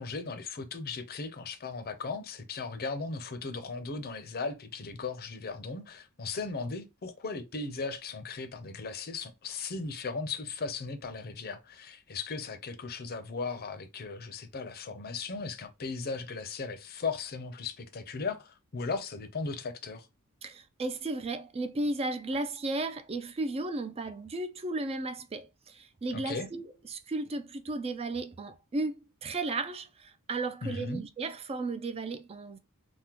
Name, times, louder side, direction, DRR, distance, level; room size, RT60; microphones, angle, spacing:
voice 1, 0.0-20.1 26.1-26.5 30.6-31.0, left 4 dB, 45° left, 0.6 m, -37 dB
voice 2, 20.4-32.6, right 2 dB, 25° right, 0.3 m, -34 dB
3.5 x 2.1 x 2.9 m
head